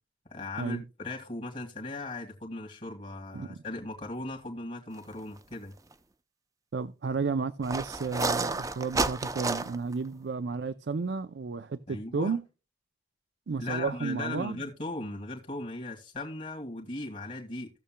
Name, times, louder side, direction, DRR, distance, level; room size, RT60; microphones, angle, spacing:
voice 1, 0.3-5.7 11.9-12.4 13.6-17.7, left 2 dB, 45° left, 2.1 m, -38 dB
sound 1, 5.4-5.5 5.9-6.0 7.6-9.9, right 3 dB, 20° right, 0.6 m, -30 dB
voice 2, 6.7-12.4 13.5-14.6, right 4 dB, 85° right, 0.5 m, -32 dB
17.0 x 6.9 x 2.2 m
head